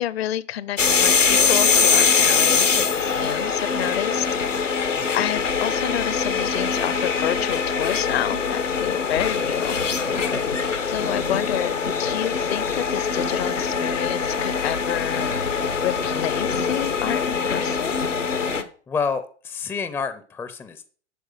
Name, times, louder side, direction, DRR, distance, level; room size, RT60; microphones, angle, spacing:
voice 1, 0.0-4.3 4.6-9.8 10.9-11.7 12.0-18.0, left 12 dB, 55° left, 0.7 m, -29 dB
sound 1, 0.8-18.6, left 5 dB, 90° left, 1.2 m, -23 dB
voice 2, 4.9-5.3 10.1-10.5 18.9-20.9, left 5 dB, 5° left, 0.5 m, -29 dB
11.0 x 4.7 x 6.3 m
figure-of-eight pair, 105°, 36 cm